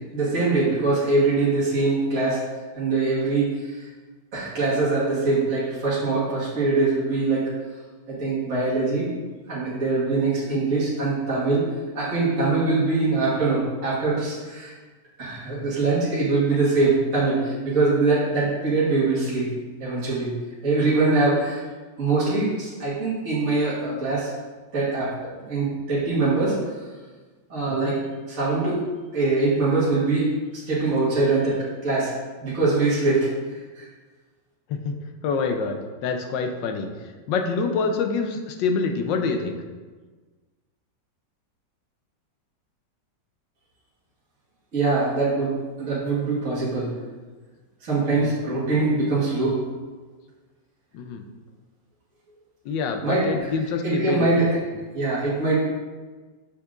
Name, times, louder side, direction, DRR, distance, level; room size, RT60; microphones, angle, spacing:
voice 1, 0.0-2.4 2.7-3.9 4.3-7.5 8.1-9.1 9.5-11.7 11.9-14.8 15.2-19.5 19.8-20.3 20.6-21.6 22.0-24.3 24.7-25.1 25.5-26.6 27.5-28.0 28.3-28.8 29.1-30.3 30.5-32.1 32.4-33.9 44.7-46.9 47.8-49.6 53.0-53.2 53.8-54.5 54.9-55.6, right 3 dB, 45° right, -10 dB, 2.0 m, -23 dB
voice 2, 35.2-36.9 37.3-39.6 48.1-48.4 50.9-51.2 52.6-54.4, left 4 dB, 85° left, 5 dB, 1.3 m, -26 dB
8.1 x 5.7 x 2.5 m, 1.4 s
omnidirectional pair, 1.9 m